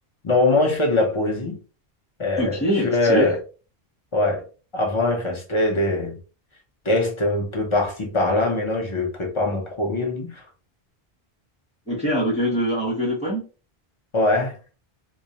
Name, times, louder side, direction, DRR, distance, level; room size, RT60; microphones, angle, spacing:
voice 1, 0.2-1.6 2.2-3.4 4.1-4.4 4.7-6.2 6.8-10.4 14.1-14.5, left 2 dB, 35° left, 0.5 m, -22 dB
voice 2, 2.4-3.3 11.9-13.4, equal, 10° right, 0.7 m, -23 dB
2.3 x 2.0 x 2.7 m
omnidirectional pair, 1.0 m